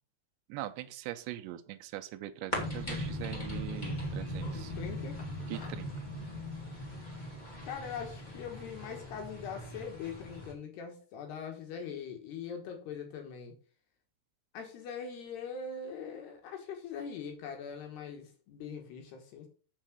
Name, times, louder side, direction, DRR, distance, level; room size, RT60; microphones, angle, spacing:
voice 1, 0.5-4.7 5.5-5.9, right 14 dB, 85° right, 8 dB, 2.7 m, -42 dB
sound 1, 2.5-10.5, left 1 dB, 15° left, 1.4 m, -39 dB
voice 2, 4.5-5.2 7.6-13.6 14.5-19.5, left 6 dB, 65° left, 3 dB, 3.1 m, -42 dB
sound 2, 5.2-5.9, left 1 dB, 85° left, 1.1 m, -52 dB
7.3 x 6.7 x 6.1 m, 0.40 s
omnidirectional pair, 5.6 m